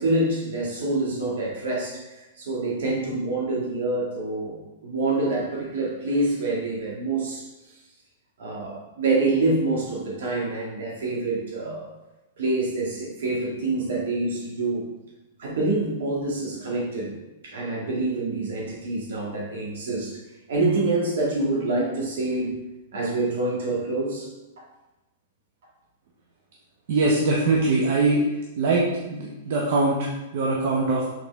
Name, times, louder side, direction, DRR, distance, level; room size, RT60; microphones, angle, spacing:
voice 1, 0.0-7.5 8.4-11.9 12.4-14.8 15.4-17.1 17.4-20.2 20.5-22.6 22.9-24.3, right 2 dB, 75° right, -3 dB, 2.0 m, -26 dB
voice 2, 26.9-28.2 28.6-31.0, right 3 dB, 60° right, -2 dB, 1.0 m, -22 dB
6.6 x 4.3 x 3.4 m, 1.0 s
hypercardioid pair, 150°, 0 cm